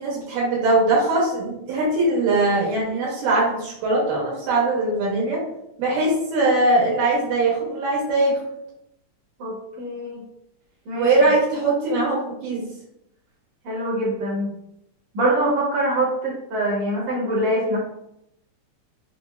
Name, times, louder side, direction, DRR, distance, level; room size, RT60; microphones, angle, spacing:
voice 1, 0.0-5.4 5.8-8.4 11.0-12.6, right 2 dB, 90° right, -5 dB, 2.5 m, -21 dB
voice 2, 9.4-10.2 10.9-11.1 13.7-14.5 15.1-17.8, right 1 dB, 70° right, -5 dB, 1.9 m, -24 dB
5.5 x 2.0 x 2.3 m, 0.80 s
omnidirectional pair, 3.6 m